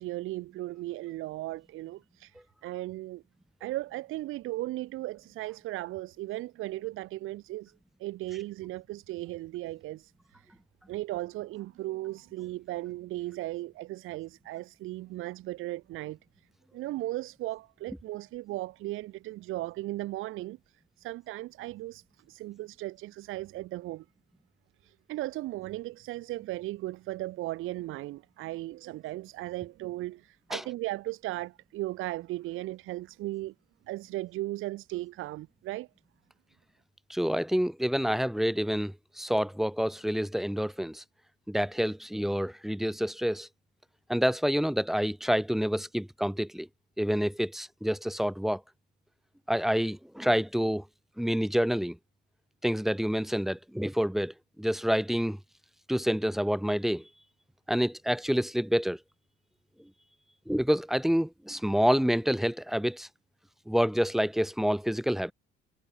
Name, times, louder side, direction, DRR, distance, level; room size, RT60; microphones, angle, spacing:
voice 1, 0.0-3.2 3.6-7.7 8.0-10.6 10.9-16.5 16.7-24.0 24.8-33.5 33.9-35.9, right 17 dB, 75° right, 1.1 m, -37 dB
voice 2, 37.1-41.0 41.5-43.5 44.1-46.7 47.0-48.6 49.5-50.8 51.2-52.0 52.6-55.4 55.9-57.0 57.7-59.0 60.5-63.1 63.7-65.3, equal, ahead, 0.9 m, -28 dB
cardioid pair, 155°, 21 cm